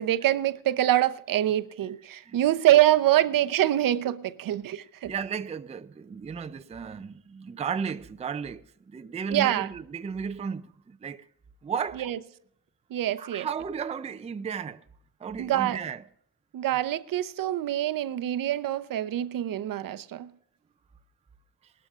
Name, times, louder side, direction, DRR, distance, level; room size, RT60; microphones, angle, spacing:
voice 1, 0.0-5.1 9.3-9.7 12.0-12.2 12.9-13.5 15.4-15.8 16.5-20.3, right 13 dB, 65° right, 0.8 m, -25 dB
voice 2, 5.1-11.3 11.6-12.1 13.2-14.8 15.2-16.0, right 6 dB, 20° right, 0.4 m, -34 dB
19.5 x 12.5 x 2.5 m
cardioid pair, 110°, 36 cm